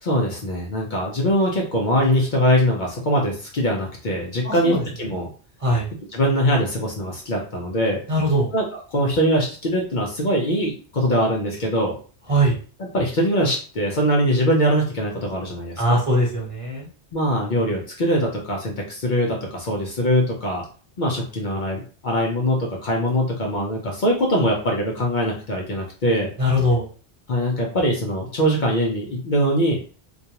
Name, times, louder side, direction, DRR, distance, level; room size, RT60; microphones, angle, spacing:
voice 1, 0.0-5.3 6.1-8.0 8.5-12.0 12.8-16.0 17.1-20.6 21.0-26.3 27.3-29.8, equal, 55° left, -1 dB, 0.6 m, -22 dB
voice 2, 4.4-4.8 5.6-5.9 8.1-8.5 12.3-12.6 15.8-16.9 26.4-26.9, equal, 35° right, -3 dB, 0.7 m, -20 dB
2.4 x 2.2 x 2.8 m, 0.39 s
omnidirectional pair, 1.1 m